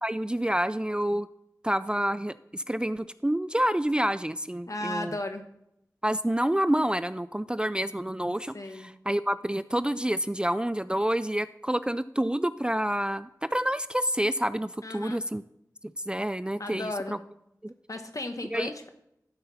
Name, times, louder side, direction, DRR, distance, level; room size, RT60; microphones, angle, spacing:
voice 1, 0.0-1.3 1.6-5.1 6.0-15.4 16.1-17.2 17.6-17.7 18.5-18.7, right 1 dB, 15° right, 14 dB, 0.3 m, -28 dB
voice 2, 4.7-5.4 8.5-8.9 14.8-15.3 16.6-17.2 17.9-18.9, left 2 dB, 55° left, 6 dB, 1.2 m, -35 dB
12.5 x 5.8 x 4.1 m, 0.79 s
wide cardioid pair, 40°, 7 cm